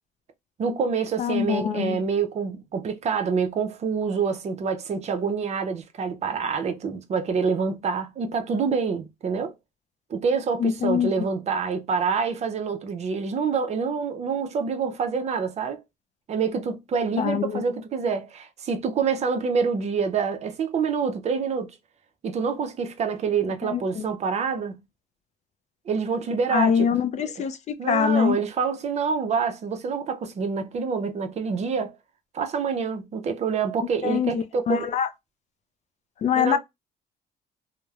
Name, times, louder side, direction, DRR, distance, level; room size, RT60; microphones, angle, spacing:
voice 1, 0.6-9.5 10.1-15.8 16.3-21.7 22.2-24.8 25.9-26.9 27.8-31.9 32.3-34.9 36.4-36.6, right 5 dB, 40° right, 0.5 m, -26 dB
voice 2, 1.2-2.0 10.6-11.1 17.2-17.6 23.6-24.0 26.5-28.4 34.0-35.1 36.2-36.6, left 7 dB, 45° left, 0.4 m, -24 dB
3.0 x 2.0 x 2.3 m
cardioid pair, 110°, 17 cm